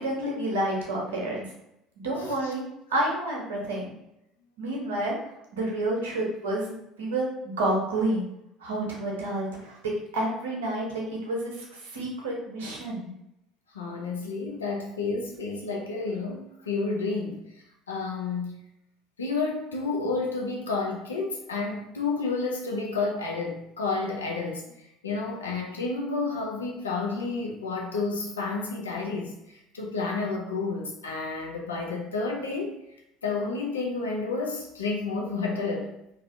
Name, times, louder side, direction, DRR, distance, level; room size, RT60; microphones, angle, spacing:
voice 1, 0.0-1.5 2.0-2.6 2.9-3.9 4.6-5.1 5.5-8.3 8.6-13.1, right 1 dB, 80° right, -2 dB, 0.6 m, -29 dB
voice 2, 2.2-2.5 13.7-17.4 17.9-18.6 19.2-24.6 25.0-29.3 29.7-32.7 33.2-35.9, left 3 dB, 85° left, 0 dB, 0.4 m, -30 dB
2.4 x 2.3 x 2.5 m, 0.82 s
hypercardioid pair, 65°, 0 cm